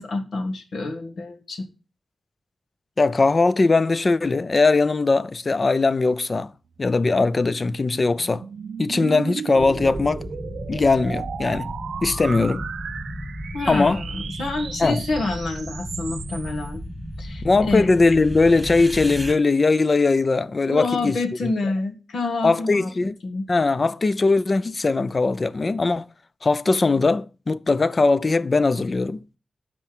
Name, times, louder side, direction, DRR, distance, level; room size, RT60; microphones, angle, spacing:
voice 1, 0.0-1.7 13.5-16.8 17.2-17.9 20.7-23.5, left 2 dB, 80° left, 1.9 m, -27 dB
voice 2, 3.0-6.5 6.8-8.4 8.8-10.2 10.7-11.7 12.0-12.6 13.7-14.0 14.8-15.0 17.4-21.2 21.4-21.5 22.4-23.2 23.5-26.1 26.4-29.2, left 3 dB, 35° left, 0.5 m, -20 dB
sound 1, 8.1-16.7, right 7 dB, 90° right, 0.4 m, -36 dB
sound 2, 9.6-19.3, equal, ahead, 2.2 m, -34 dB
12.0 x 4.5 x 6.0 m
wide cardioid pair, 120°, 0 cm